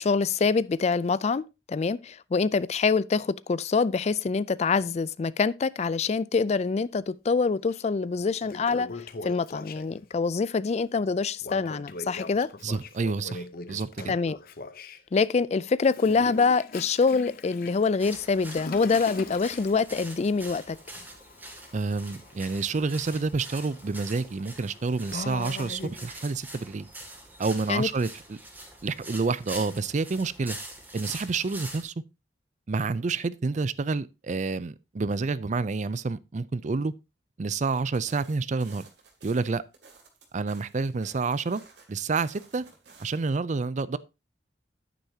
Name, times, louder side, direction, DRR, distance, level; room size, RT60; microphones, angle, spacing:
voice 1, 0.0-1.4 1.7-8.9 9.2-12.5 14.1-14.4 15.1-20.8 27.7-27.9, left 4 dB, 40° left, 0.4 m, -25 dB
Toilet flush, 7.7-7.8 8.2-10.2 11.4-15.0 15.8-26.2, left 3 dB, 55° left, 0.8 m, -42 dB
voice 2, 12.6-14.2 21.7-26.9 27.4-28.4 28.8-30.6 30.9-31.9 32.7-36.9 37.4-38.8 39.2-39.6 40.3-41.6 41.9-42.6 43.0-44.0, right 4 dB, 45° right, 0.5 m, -29 dB
sound 1, 18.0-31.8, right 1 dB, 10° right, 2.4 m, -44 dB
sound 2, 37.5-43.3, right 4 dB, 75° right, 2.6 m, -54 dB
10.0 x 9.3 x 2.8 m
head